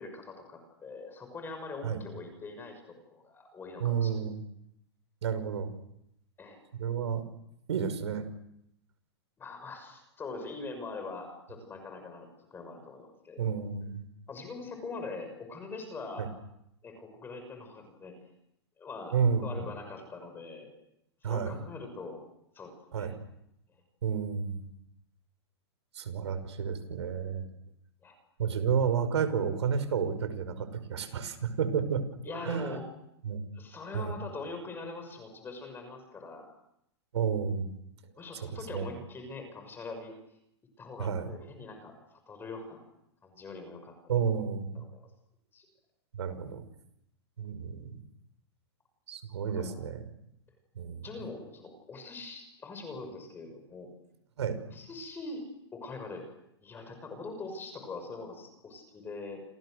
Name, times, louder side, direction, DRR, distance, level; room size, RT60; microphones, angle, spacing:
voice 1, 0.0-4.2 6.4-6.6 9.4-13.5 14.3-16.3 16.8-18.2 18.8-19.1 19.4-20.7 21.2-22.2 22.5-23.1 23.7-23.8 28.0-28.2 32.2-32.8 33.5-36.5 38.2-40.1 40.8-42.8 43.2-43.9 44.7-45.1 45.5-45.7 49.5-49.7 51.0-53.9 54.7-55.4 55.7-56.2 56.6-59.4, left 3 dB, 15° left, 6 dB, 6.3 m, -43 dB
voice 2, 3.8-4.4 5.2-5.7 6.8-7.2 7.7-8.3 13.4-14.1 16.2-16.3 19.1-19.7 21.2-21.5 22.9-23.1 24.0-24.7 25.9-27.5 28.4-32.1 32.4-32.8 33.2-33.4 33.9-34.1 37.1-37.7 38.4-38.9 41.0-41.3 44.1-44.8 46.1-46.7 47.4-48.0 49.1-50.0 50.8-51.1 54.4-54.6, right 7 dB, 85° right, 11 dB, 5.6 m, -31 dB
29.5 x 28.0 x 6.6 m, 0.79 s
hypercardioid pair, 145°, 14 cm